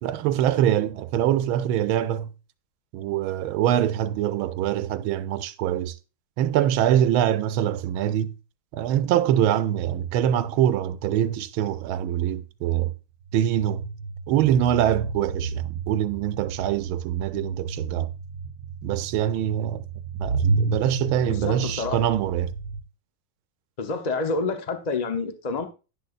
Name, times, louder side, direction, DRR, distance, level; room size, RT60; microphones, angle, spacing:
voice 1, 0.0-2.3 2.9-5.9 6.4-8.3 8.7-12.9 13.3-13.8 14.3-18.1 18.8-19.8 20.2-22.5, right 11 dB, 85° right, 1.5 m, -24 dB
sound 1, 13.2-22.8, right 4 dB, 65° right, 1.6 m, -32 dB
voice 2, 21.2-22.0 23.8-25.6, left 3 dB, 50° left, 0.5 m, -28 dB
10.5 x 10.5 x 2.5 m
omnidirectional pair, 2.2 m